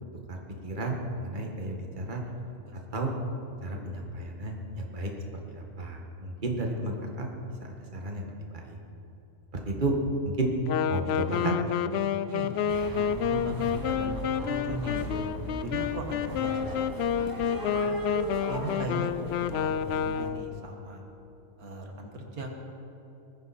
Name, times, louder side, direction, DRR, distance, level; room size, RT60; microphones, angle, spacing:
voice 1, 0.6-2.2 2.9-3.1 3.6-5.1 5.5-7.3 7.6-8.8 9.6-10.0 10.2-10.5 10.9-11.5, right 2 dB, 35° right, 1 dB, 1.8 m, -32 dB
voice 2, 2.6-3.0 12.3-12.6 12.9-16.9 17.3-18.0 18.5-19.1 19.5-21.0 21.6-22.6, right 1 dB, 80° right, 2 dB, 2.1 m, -38 dB
Wind instrument woodwind instrument, 10.7-20.6, left 8 dB, 70° left, 0.6 m, -29 dB
sound 1, 12.7-20.3, equal, 15° right, 1.7 m, -38 dB
21.0 x 14.5 x 4.3 m, 3.0 s
omnidirectional pair, 1.5 m